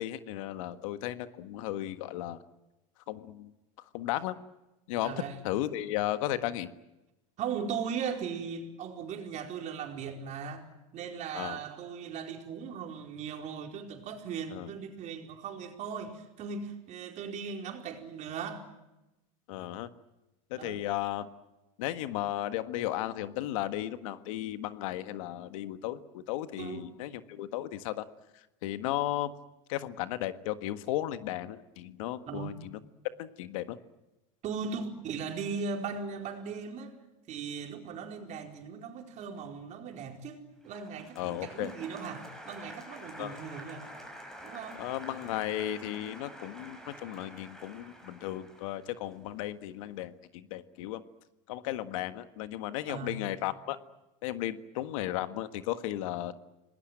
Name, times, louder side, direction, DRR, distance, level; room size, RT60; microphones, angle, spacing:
voice 1, 0.0-2.4 3.1-3.5 3.9-4.4 4.9-5.1 5.4-6.7 11.3-11.6 14.5-14.7 19.5-19.9 20.5-21.3 21.8-28.0 28.6-29.3 29.7-32.8 33.2-33.8 41.2-41.7 43.2-43.4 44.8-51.0 51.5-53.8 54.2-56.3, left 14 dB, 75° left, 1.6 m, -35 dB
voice 2, 5.0-5.4 7.4-10.6 10.9-18.7 20.6-20.8 26.6-26.9 32.3-32.6 34.4-37.0 37.3-43.9 44.4-44.8 52.9-53.2, right 6 dB, 45° right, 4.6 m, -38 dB
Applause, 40.6-49.7, equal, 5° left, 6.5 m, -48 dB
26.5 x 20.0 x 9.0 m
supercardioid pair, 120°, 17 cm